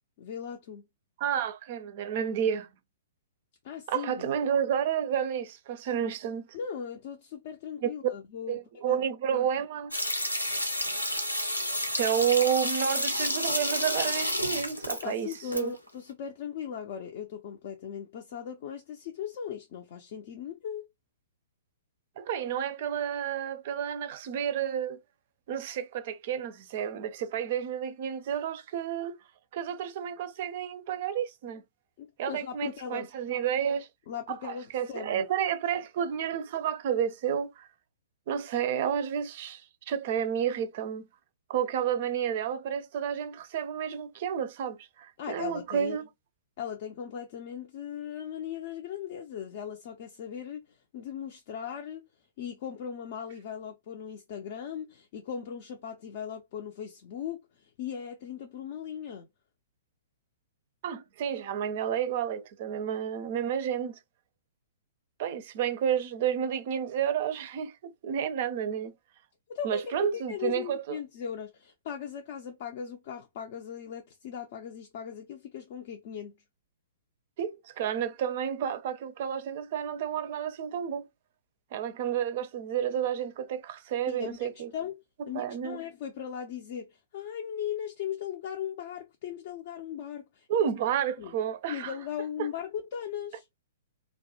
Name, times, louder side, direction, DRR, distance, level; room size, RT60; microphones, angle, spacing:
voice 1, 0.2-0.8 3.6-4.2 6.5-9.0 9.3-9.5 14.9-20.9 32.0-33.1 34.1-35.3 45.2-46.0 46.6-52.1 52.4-59.3 69.5-76.3 84.1-90.7 91.2-91.4 91.7-93.4, left 8 dB, 45° left, 0.4 m, -38 dB
voice 2, 1.2-2.7 3.9-6.4 7.8-7.9 8.5-9.9 12.0-15.7 22.2-25.0 25.5-29.2 29.5-31.6 32.2-33.9 34.3-37.7 38.3-41.1 41.5-46.0 60.8-64.0 65.2-68.9 69.6-71.0 77.4-81.1 81.7-84.7 85.3-85.8 90.5-91.9 92.4-92.5, right 9 dB, 45° right, 0.4 m, -31 dB
sound 1, 9.9-15.6 15.9-16.0, left 1 dB, 90° left, 0.7 m, -30 dB
2.4 x 2.1 x 2.7 m
figure-of-eight pair, 115°, 0 cm